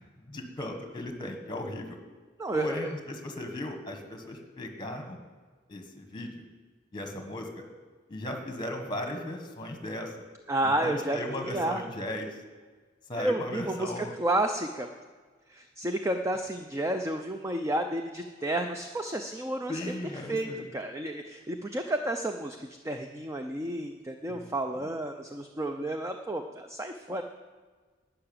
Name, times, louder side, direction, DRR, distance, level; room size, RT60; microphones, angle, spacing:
voice 1, 0.2-2.0 2.5-5.2 5.7-6.4 6.9-7.6 8.1-10.1 10.6-12.4 13.1-14.1 19.7-20.6 24.3-24.5, left 1 dB, 25° left, 4 dB, 1.5 m, -36 dB
voice 2, 2.4-2.9 10.5-11.8 13.2-14.9 15.5-19.9 20.3-27.2, right 1 dB, 15° right, 6 dB, 0.5 m, -31 dB
11.5 x 5.8 x 8.8 m, 1.4 s
head